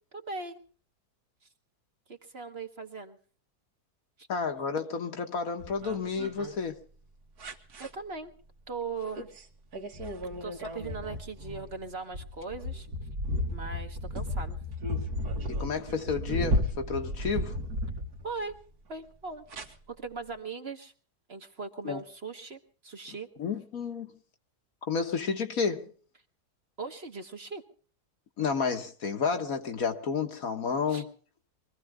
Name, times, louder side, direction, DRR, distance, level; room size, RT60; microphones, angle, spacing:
voice 1, 0.1-0.6 2.1-3.2 7.8-8.3 8.7-9.3 10.4-12.9 13.5-14.6 18.2-18.5 18.9-19.4 19.9-20.9 21.3-23.3 26.8-27.6 30.9-31.1, right 4 dB, 40° right, 1.5 m, -39 dB
voice 2, 4.3-6.8 15.5-17.6 21.8-22.0 23.4-24.1 24.9-25.9 28.4-31.0, left 5 dB, 65° left, 1.8 m, -31 dB
sound 1, 5.6-6.5 7.4-7.9 9.2-9.4 9.7-18.5 19.5-19.7, equal, 75° right, 2.1 m, -33 dB
23.5 x 15.5 x 3.6 m
omnidirectional pair, 1.6 m